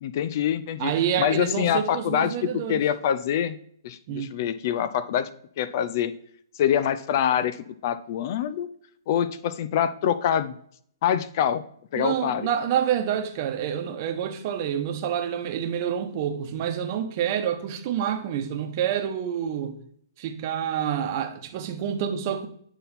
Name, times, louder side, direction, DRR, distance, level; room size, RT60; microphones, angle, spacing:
voice 1, 0.0-0.9 1.2-3.6 3.8-5.3 5.6-6.1 6.5-7.6 7.8-8.7 9.1-10.5 11.0-11.6 11.9-12.5, left 9 dB, 50° left, 0.5 m, -25 dB
voice 2, 0.8-2.8 4.1-4.3 11.9-19.8 20.2-22.5, right 9 dB, 40° right, 1.0 m, -28 dB
8.9 x 4.1 x 4.1 m
hypercardioid pair, 140°, 2 cm